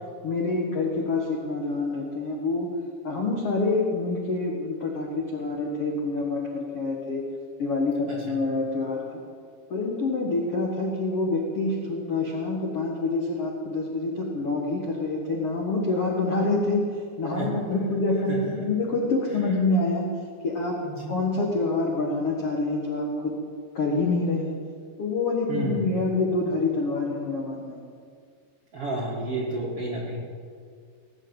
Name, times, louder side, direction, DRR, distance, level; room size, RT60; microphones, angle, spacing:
voice 1, 0.2-2.7 3.0-7.2 7.6-9.2 9.7-16.8 17.2-20.1 20.4-20.8 21.1-23.4 23.7-24.5 25.0-27.8, left 3 dB, 65° left, -1 dB, 1.4 m, -26 dB
voice 2, 20.8-21.1 25.5-25.9 28.7-30.2, right 2 dB, 50° right, -4 dB, 1.8 m, -31 dB
19.5 x 7.4 x 9.0 m, 2.1 s
omnidirectional pair, 5.3 m